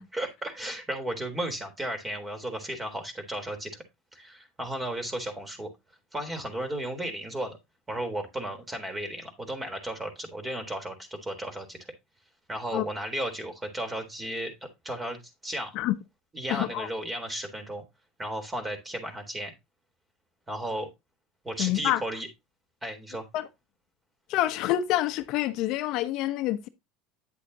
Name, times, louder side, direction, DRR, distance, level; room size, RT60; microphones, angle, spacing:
voice 1, 0.1-3.7 4.1-5.7 6.1-7.6 7.9-11.9 12.5-15.7 16.3-17.8 18.2-19.5 20.5-20.9 21.4-22.3 22.8-23.3, right 1 dB, 15° right, 3.8 m, -34 dB
voice 2, 16.5-16.9 21.6-22.0 23.3-23.5 24.3-26.7, left 14 dB, 60° left, 0.9 m, -27 dB
9.9 x 8.2 x 2.9 m
supercardioid pair, 105°, 0 cm